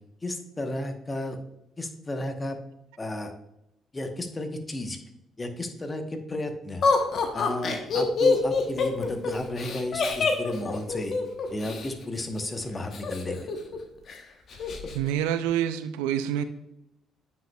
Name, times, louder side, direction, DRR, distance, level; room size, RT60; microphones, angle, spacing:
voice 1, 0.2-1.4 1.8-2.6 3.0-3.3 3.9-5.0 5.4-6.8 7.3-11.1 11.5-13.5, left 1 dB, 25° left, 1.0 m, -33 dB
Laughter, 6.8-11.9 12.9-13.8 14.1-14.2 14.5-15.0, left 4 dB, 55° left, 0.9 m, -26 dB
voice 2, 14.9-16.4, right 10 dB, 85° right, 0.4 m, -27 dB
9.0 x 5.1 x 2.3 m
hypercardioid pair, 55°, 0 cm